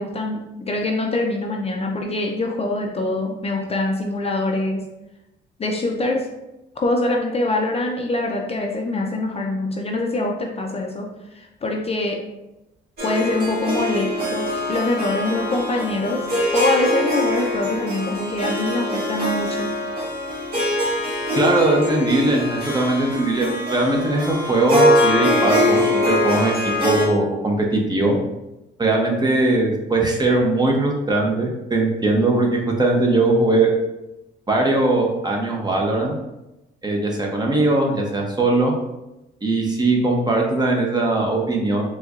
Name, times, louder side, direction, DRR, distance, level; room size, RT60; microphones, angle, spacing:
voice 1, 0.0-4.8 5.6-6.3 6.8-11.1 11.4-12.2 13.0-16.2 16.5-19.7, left 2 dB, 30° left, 1 dB, 0.5 m, -24 dB
Harp, 13.0-27.1, left 1 dB, 50° right, 1.4 m, -23 dB
voice 2, 21.4-26.5 26.8-28.2 28.8-33.7 34.5-36.2 36.8-38.7 39.4-41.8, right 2 dB, 20° right, 0 dB, 0.7 m, -20 dB
4.3 x 2.3 x 2.4 m, 0.94 s
cardioid pair, 90°, 20 cm